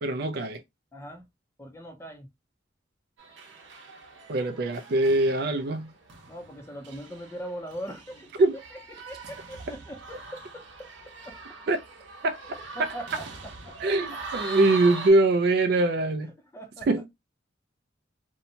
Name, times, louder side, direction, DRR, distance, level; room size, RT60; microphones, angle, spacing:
voice 1, 0.0-0.6 4.3-5.9 8.4-8.6 11.7-11.8 12.2-12.4 13.8-16.3 16.9-17.1, right 2 dB, 50° right, 0.3 m, -23 dB
voice 2, 0.9-1.3 1.6-2.3 6.3-8.3 8.9-11.4 12.4-13.9 16.2-16.9, equal, 15° left, 0.5 m, -41 dB
sound 1, 3.2-15.1, right 3 dB, 70° right, 0.8 m, -42 dB
2.7 x 2.1 x 2.7 m
head